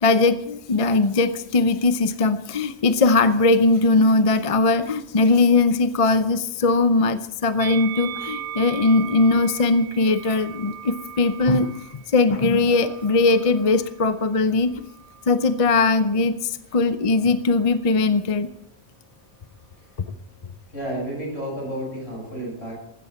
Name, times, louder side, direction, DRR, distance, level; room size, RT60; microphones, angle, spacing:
voice 1, 0.0-14.7 15.3-18.5, left 3 dB, 35° left, 11 dB, 0.6 m, -20 dB
Musical instrument, 7.6-14.0 14.8-15.8, right 10 dB, 85° right, 1.1 m, -38 dB
voice 2, 20.7-22.7, right 1 dB, 70° left, -3 dB, 8.1 m, -31 dB
15.5 x 13.0 x 4.3 m, 0.77 s
omnidirectional pair, 1.1 m